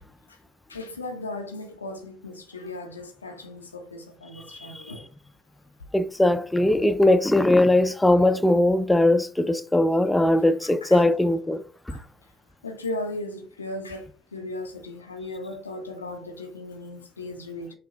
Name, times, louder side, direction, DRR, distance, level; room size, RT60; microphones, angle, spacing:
voice 1, 0.7-5.1 10.6-11.0 11.9-12.0 12.6-17.7, left 2 dB, 90° left, 0.4 m, -37 dB
voice 2, 4.5-4.8 5.9-11.6 11.9-12.0, left 1 dB, 10° left, 0.5 m, -20 dB
5.7 x 2.8 x 2.8 m
figure-of-eight pair, 50°, 0 cm